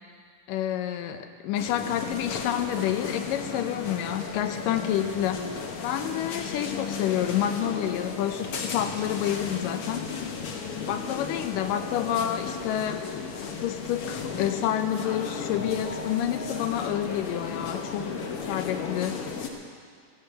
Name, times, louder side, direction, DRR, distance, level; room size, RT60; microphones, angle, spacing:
voice 1, 0.5-5.5 5.8-10.1 10.9-13.1 13.6-18.2 18.5-19.2, left 10 dB, 85° left, 8 dB, 2.5 m, -29 dB
sound 1, 1.5-19.5, left 5 dB, 60° left, 1.6 m, -34 dB
14.0 x 10.5 x 8.0 m, 2.1 s
omnidirectional pair, 3.8 m